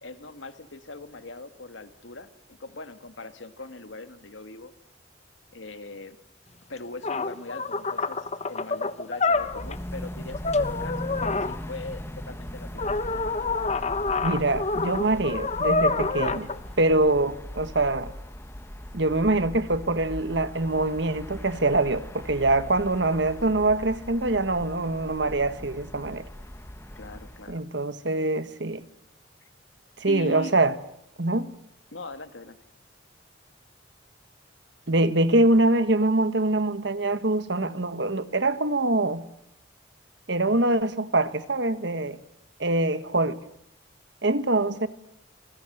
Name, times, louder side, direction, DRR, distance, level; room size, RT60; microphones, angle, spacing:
voice 1, 0.0-4.7 5.5-6.2 6.7-12.8 23.5-23.9 27.0-27.6 29.4-29.5 30.1-30.5 31.9-32.6, left 2 dB, 80° left, 1.9 m, -41 dB
sound 1, 6.8-6.9 7.0-9.8 10.3-11.6 12.8-16.6, left 3 dB, 35° left, 1.2 m, -27 dB
sound 2, 9.3-27.6, equal, 15° left, 1.0 m, -39 dB
voice 2, 14.2-16.5 16.8-18.1 18.9-26.2 27.5-28.8 30.0-30.7 31.2-31.5 34.9-39.2 40.3-42.2 42.6-43.4 44.2-44.9, right 2 dB, 65° right, 1.5 m, -24 dB
26.5 x 20.0 x 8.0 m
head